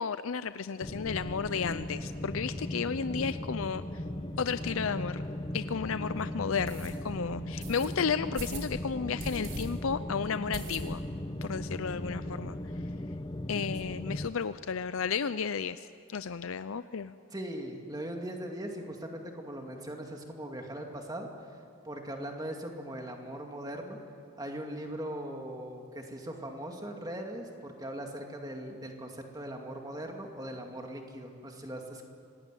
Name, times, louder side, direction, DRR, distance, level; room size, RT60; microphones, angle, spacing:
voice 1, 0.0-3.8 4.4-5.2 5.5-11.0 11.4-12.6 13.5-17.1, left 6 dB, 75° left, 13 dB, 0.5 m, -33 dB
sound 1, 0.8-14.3, left 1 dB, 20° left, 0.8 m, -37 dB
sound 2, 5.2-5.3 5.8-5.9 6.6-6.9 7.6-7.9 8.3-8.7 9.2-9.6 10.0-10.1 10.5-11.2 11.5-11.6 11.9-12.0 12.2-12.8, right 2 dB, 65° right, 4.5 m, -41 dB
voice 2, 17.3-21.3 21.8-24.0 24.4-32.0, right 1 dB, 20° right, 2 dB, 2.5 m, -40 dB
26.0 x 19.0 x 9.3 m, 2.3 s
head